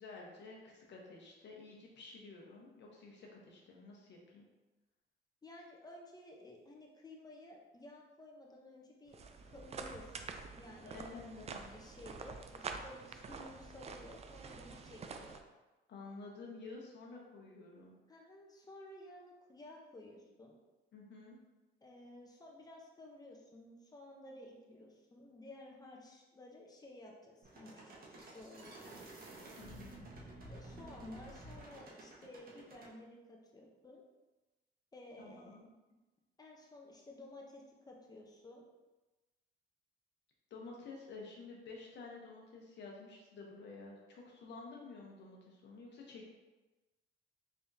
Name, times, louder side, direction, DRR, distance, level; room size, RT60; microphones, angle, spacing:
voice 1, 0.0-4.4 10.8-11.7 15.9-18.0 20.9-21.4 29.6-30.1 35.2-35.7 40.5-46.3, left 3 dB, 65° left, -2 dB, 1.0 m, -51 dB
voice 2, 5.4-15.4 18.1-20.6 21.8-29.1 30.5-34.0 34.9-35.6 36.4-38.6, left 1 dB, 20° left, -1 dB, 0.8 m, -54 dB
sound 1, 9.1-15.4, right 4 dB, 35° right, 0.3 m, -47 dB
sound 2, 27.4-32.9, right 2 dB, 50° right, 1.1 m, -52 dB
3.5 x 3.5 x 2.8 m, 1.1 s
cardioid pair, 90°, 20 cm